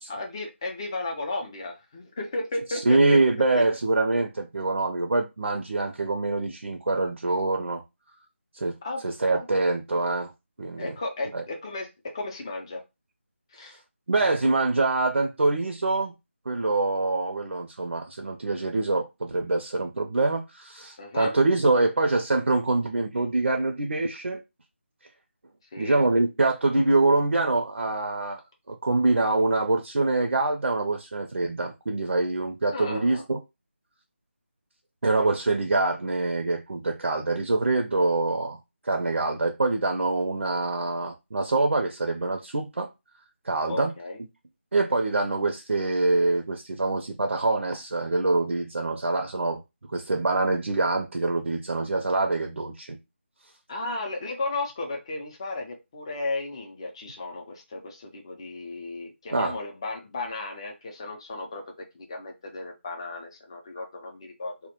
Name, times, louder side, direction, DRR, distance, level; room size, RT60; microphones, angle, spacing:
voice 1, 0.1-3.2 3.5-3.6 8.8-9.0 9.3-9.4 10.8-12.8 13.5-13.8 21.0-21.4 25.7-26.0 32.7-33.2 43.7-44.2 53.7-64.5, left 2 dB, 25° left, 0.5 m, -34 dB
voice 2, 2.7-7.8 8.5-8.8 9.0-10.3 10.6-11.0 11.3-11.4 14.1-16.1 16.5-24.4 25.8-28.4 28.7-33.4 35.0-38.6 38.8-42.9 43.4-43.9 44.7-49.6 49.9-53.0 59.3-59.6, right 2 dB, 75° right, 0.5 m, -25 dB
2.2 x 2.1 x 2.8 m
figure-of-eight pair, 165°, 7 cm